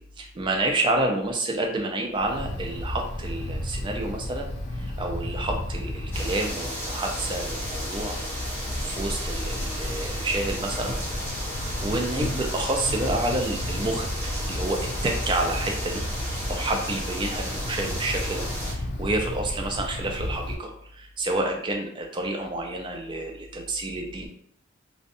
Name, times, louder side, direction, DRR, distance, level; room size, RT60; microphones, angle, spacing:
voice 1, 0.2-4.5 4.8-8.2 8.8-11.0 11.8-14.1 14.5-24.3, right 2 dB, 25° right, 2 dB, 0.4 m, -29 dB
Wind, 2.1-20.5, left 1 dB, 55° left, 0.4 m, -33 dB
sound 1, 6.1-18.7, equal, 10° left, 0.6 m, -34 dB
2.5 x 2.1 x 2.6 m, 0.68 s
head